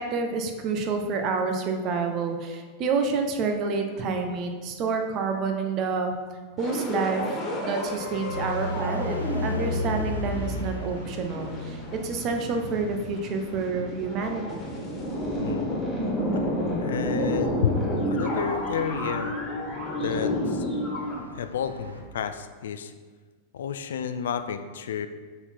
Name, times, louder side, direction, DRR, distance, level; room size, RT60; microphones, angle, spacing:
voice 1, 0.0-6.1 6.6-7.2 7.6-14.7, right 4 dB, 35° right, 4 dB, 0.8 m, -28 dB
sound 1, 6.6-21.2, equal, 20° left, 1.8 m, -31 dB
sound 2, 8.3-22.0, left 2 dB, 90° left, 0.8 m, -37 dB
voice 2, 15.4-15.7 16.8-19.4 20.0-20.7 21.3-22.9 23.5-25.1, left 7 dB, 60° left, 9 dB, 0.4 m, -30 dB
6.7 x 4.1 x 4.5 m, 1.4 s
figure-of-eight pair, 90°, 0 cm